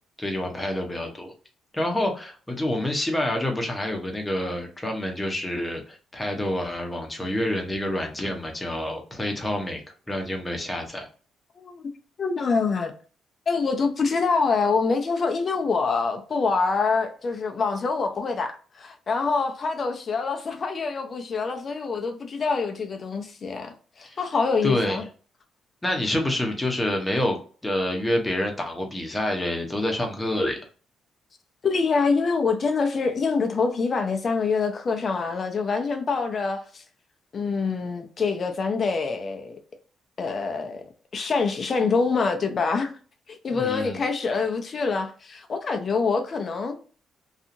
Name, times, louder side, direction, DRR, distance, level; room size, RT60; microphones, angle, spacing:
voice 1, 0.2-1.3 1.7-9.8 10.1-11.1 24.0-24.2 24.6-25.1 25.8-27.4 27.6-30.6 43.5-44.0, left 1 dB, 15° left, 0.8 m, -27 dB
voice 2, 12.2-12.9 13.5-25.0 31.6-36.8 37.3-39.6 40.2-40.8 41.1-42.9 43.3-46.8, left 4 dB, 45° left, 0.5 m, -25 dB
2.7 x 2.4 x 2.5 m
cardioid pair, 90°, 0 cm